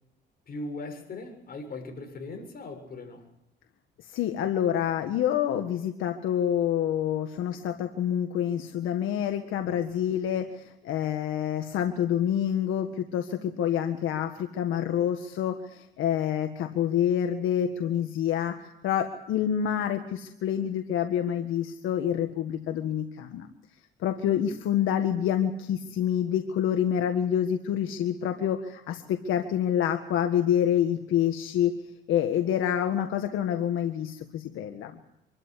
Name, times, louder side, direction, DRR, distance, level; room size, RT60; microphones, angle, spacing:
voice 1, 0.5-3.3, left 2 dB, 50° left, 4 dB, 7.3 m, -39 dB
voice 2, 4.0-23.5 24.0-31.7 32.1-35.0, left 10 dB, 85° left, 6 dB, 1.7 m, -27 dB
26.0 x 13.5 x 9.8 m, 0.82 s
cardioid pair, 90°, 20 cm